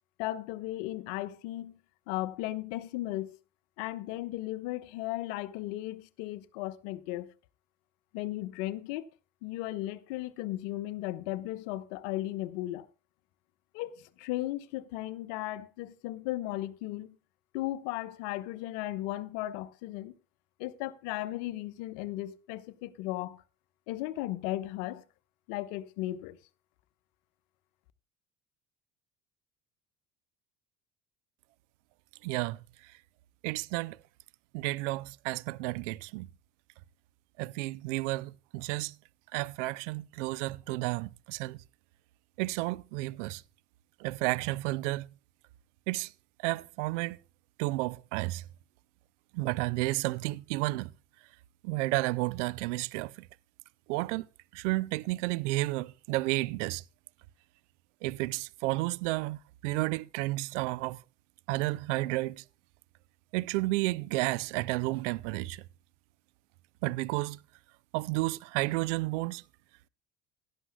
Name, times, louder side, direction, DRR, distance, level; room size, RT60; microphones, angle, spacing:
voice 1, 0.2-1.8 2.1-3.4 3.8-7.3 8.1-9.0 9.4-12.9 13.7-17.1 17.5-20.1 20.6-23.4 23.9-25.0 25.5-26.4, left 16 dB, 65° left, 1.1 m, -36 dB
voice 2, 32.2-32.6 33.4-34.0 34.5-36.3 37.4-38.9 39.3-41.6 42.4-43.4 44.0-45.1 45.9-46.1 46.4-47.2 47.6-48.4 49.3-50.9 51.6-53.1 53.9-54.3 54.5-56.8 58.0-61.0 61.5-62.4 63.3-65.6 66.8-67.4 67.9-69.4, right 20 dB, 70° right, 0.6 m, -31 dB
16.5 x 12.5 x 2.3 m
hypercardioid pair, 65°, 38 cm